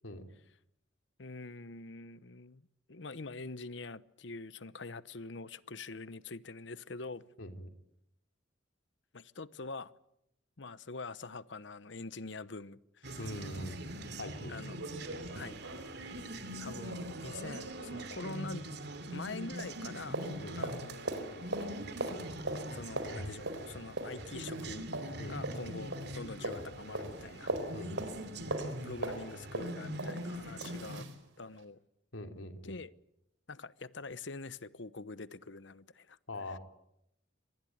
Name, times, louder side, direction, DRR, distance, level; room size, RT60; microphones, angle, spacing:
voice 1, 1.2-7.2 9.1-9.9 10.6-13.2 14.5-14.8 15.3-15.6 16.6-18.7 19.1-20.2 20.6-21.9 22.7-24.9 25.3-27.5 28.5-31.0 31.4-31.8 32.7-32.9 33.5-36.2, left 3 dB, 65° left, 1.0 m, -45 dB
voice 2, 7.4-7.7 13.2-13.8 14.2-14.6 20.4-20.6 25.2-25.4 27.7-28.0 32.1-32.8 36.3-36.6, left 1 dB, 85° left, 3.1 m, -42 dB
sound 1, 13.0-31.0, right 1 dB, 60° right, 2.7 m, -43 dB
sound 2, 13.9-14.0 14.3-14.4 14.8-19.3 19.6-31.2 31.6-31.7, right 2 dB, 85° right, 4.4 m, -41 dB
25.5 x 20.0 x 9.3 m
head